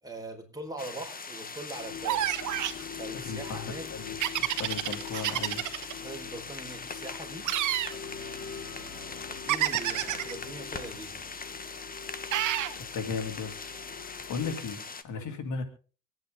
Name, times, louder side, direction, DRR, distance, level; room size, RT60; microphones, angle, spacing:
voice 1, 0.0-2.3 2.9-3.9 5.9-7.5 7.9-11.2 15.1-15.3, right 2 dB, 10° right, 1 dB, 4.6 m, -42 dB
sound 1, 0.8-15.0, left 4 dB, 30° left, 1.4 m, -41 dB
sound 2, 1.7-14.6, left 8 dB, 55° left, 1.3 m, -45 dB
sound 3, 2.0-2.8 4.2-5.9 7.4-7.9 9.5-10.3 12.3-12.7, right 13 dB, 75° right, 1.2 m, -29 dB
voice 2, 3.2-5.6 12.8-13.7 14.0-15.6, left 5 dB, 80° left, 6 dB, 2.7 m, -36 dB
26.0 x 9.3 x 3.7 m, 0.37 s
cardioid pair, 90°, 30 cm